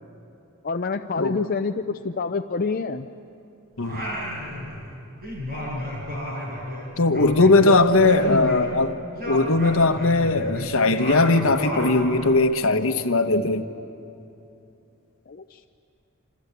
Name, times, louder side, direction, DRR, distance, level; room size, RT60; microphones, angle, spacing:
voice 1, 0.6-3.1 7.1-7.8 8.2-8.6 15.3-15.7, left 4 dB, 45° left, 6 dB, 0.6 m, -27 dB
Singing, 3.8-4.9 5.2-8.8 9.1-12.4, left 1 dB, 45° right, 6.6 m, -32 dB
voice 2, 7.0-9.0 9.3-13.7, left 2 dB, 70° left, 7 dB, 1.3 m, -19 dB
27.0 x 26.5 x 8.3 m, 2.9 s
head